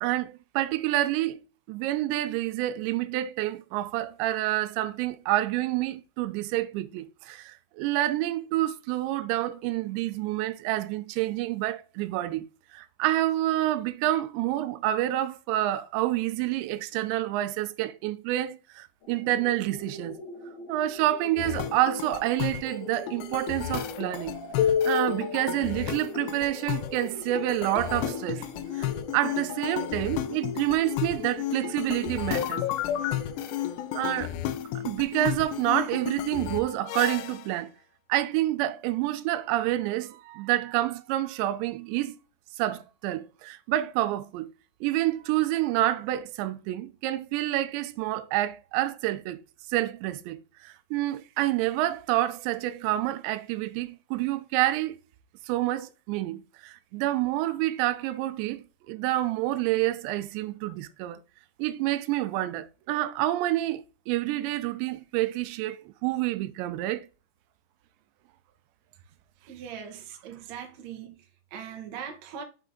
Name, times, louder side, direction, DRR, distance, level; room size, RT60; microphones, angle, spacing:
voice 1, 0.0-1.4 1.7-12.4 12.7-20.2 20.7-24.3 24.6-28.5 28.7-32.6 33.9-34.4 34.8-37.7 38.1-42.2 42.6-44.5 44.8-49.4 49.7-55.0 55.5-61.2 61.6-67.1, right 15 dB, 85° right, 2.9 m, -28 dB
sound 1, 19.0-34.2, left 3 dB, 55° left, 1.4 m, -43 dB
sound 2, 21.4-37.5, left 10 dB, 80° left, 2.6 m, -31 dB
voice 2, 69.5-72.4, right 8 dB, 70° right, 1.6 m, -41 dB
6.8 x 4.5 x 3.8 m
omnidirectional pair, 5.0 m